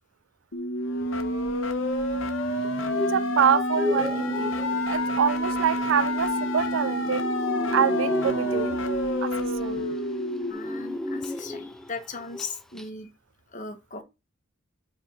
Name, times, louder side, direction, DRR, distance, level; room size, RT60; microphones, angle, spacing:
sound 1, 0.5-10.5, left 1 dB, 70° left, 1.1 m, -28 dB
sound 2, 2.6-11.9 12.2-12.5 12.8-12.9, left 1 dB, 5° left, 0.6 m, -34 dB
voice 1, 3.0-4.5 4.9-7.2 7.7-8.8 9.2-9.9 10.5-10.6, right 8 dB, 65° right, 0.4 m, -26 dB
voice 2, 10.5-13.1 13.5-14.0, left 4 dB, 40° left, 1.3 m, -38 dB
5.3 x 4.4 x 5.3 m
head